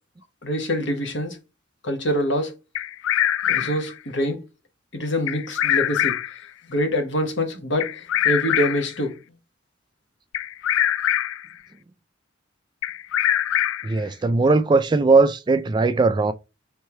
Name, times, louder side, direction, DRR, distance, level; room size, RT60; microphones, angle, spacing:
voice 1, 0.4-1.4 1.8-2.5 3.5-4.4 4.9-6.2 6.7-9.2, equal, 65° left, 1.1 m, -25 dB
Bird vocalization bird call bird song, 2.7-3.9 5.3-6.4 7.8-9.0 10.3-11.5 12.8-14.0, left 11 dB, 90° left, 0.3 m, -23 dB
voice 2, 13.8-16.3, right 3 dB, 25° right, 0.3 m, -19 dB
3.5 x 3.3 x 4.3 m
head